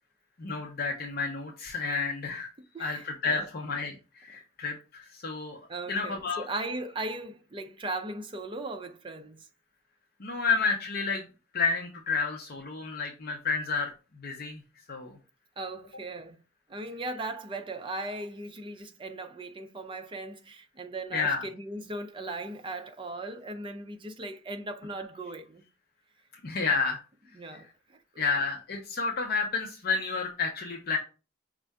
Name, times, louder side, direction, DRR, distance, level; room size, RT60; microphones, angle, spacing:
voice 1, 0.4-2.5 2.8-5.6 5.9-6.4 10.2-11.2 11.5-13.9 14.2-14.6 14.9-15.2 21.1-21.4 26.4-27.0 28.2-31.0, left 4 dB, 50° left, 0.7 m, -30 dB
voice 2, 2.6-3.5 5.7-9.5 15.6-16.4 16.7-25.6 27.3-28.2, right 2 dB, 25° right, 0.5 m, -38 dB
5.3 x 2.5 x 3.4 m
head